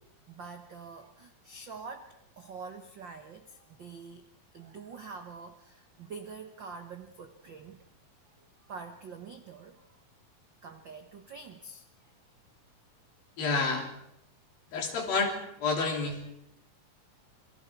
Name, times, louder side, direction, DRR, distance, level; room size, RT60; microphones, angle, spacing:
voice 1, 0.3-4.3 4.5-7.9 8.7-10.0 10.6-11.8, right 5 dB, 80° right, 7 dB, 1.0 m, -45 dB
voice 2, 13.4-13.9 14.7-15.3 15.6-16.2, left 4 dB, 90° left, 1 dB, 5.2 m, -29 dB
28.0 x 23.0 x 4.6 m, 0.80 s
omnidirectional pair, 4.0 m